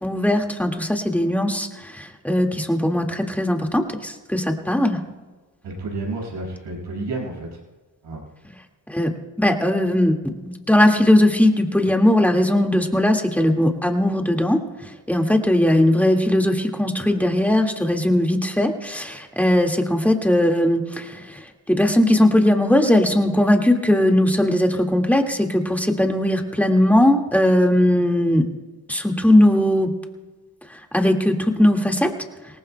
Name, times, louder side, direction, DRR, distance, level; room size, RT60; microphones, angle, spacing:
voice 1, 0.0-5.0 8.9-9.1 9.4-28.5 28.9-29.9 30.9-32.1, left 1 dB, 5° left, 2 dB, 1.9 m, -19 dB
voice 2, 5.6-7.5 8.0-8.3, right 2 dB, 80° right, -3 dB, 6.1 m, -30 dB
22.5 x 18.5 x 2.2 m, 1.3 s
cardioid pair, 65°, 41 cm